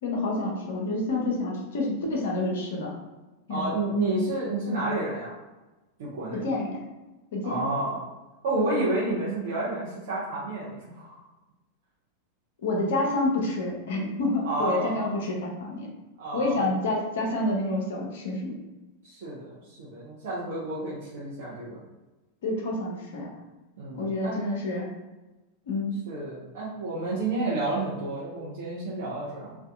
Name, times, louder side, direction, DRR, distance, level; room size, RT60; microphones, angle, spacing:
voice 1, 0.0-2.9 3.5-3.7 6.3-6.8 7.3-7.7 12.6-15.9 16.3-18.5 22.4-23.3 24.0-24.9 25.7-26.0, left 2 dB, 60° left, -1 dB, 0.6 m, -28 dB
voice 2, 3.5-5.4 6.0-6.4 7.4-8.0 8.4-11.2 14.4-15.1 16.2-16.7 19.0-21.8 23.8-24.4 26.1-29.6, right 2 dB, 55° right, -7 dB, 0.5 m, -30 dB
2.6 x 2.2 x 2.3 m, 1.1 s
figure-of-eight pair, 90°, 0 cm